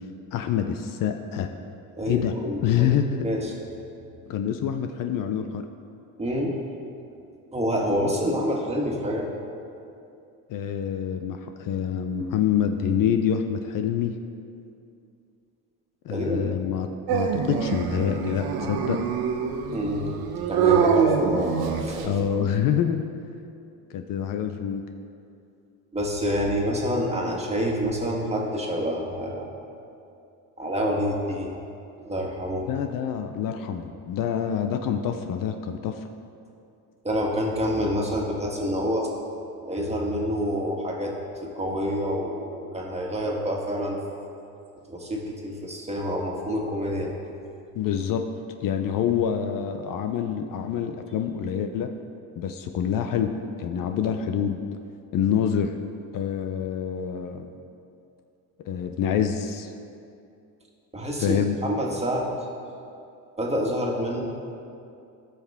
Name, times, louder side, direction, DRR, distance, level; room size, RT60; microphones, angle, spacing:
voice 1, 0.3-1.5 2.1-2.3 2.6-3.3 4.3-5.6 10.5-14.1 16.0-19.0 22.0-23.1 23.9-24.8 32.7-36.1 47.7-48.2 48.6-51.9 52.4-53.3 53.6-54.6 55.1-55.7 56.1-57.5 58.7-59.7 61.2-61.5, left 8 dB, 60° left, 6 dB, 0.6 m, -26 dB
voice 2, 2.0-3.5 6.2-6.6 7.5-9.3 16.1-16.6 19.7-20.1 20.5-22.2 25.9-29.5 30.6-31.5 32.1-32.7 37.0-39.1 39.7-41.1 41.4-44.0 44.9-47.1 60.9-62.3 63.4-64.2, equal, 15° right, -2 dB, 1.7 m, -27 dB
Dog, 17.1-22.2, right 6 dB, 75° right, 0.9 m, -24 dB
14.0 x 5.9 x 3.6 m, 2.6 s
supercardioid pair, 95°, 38 cm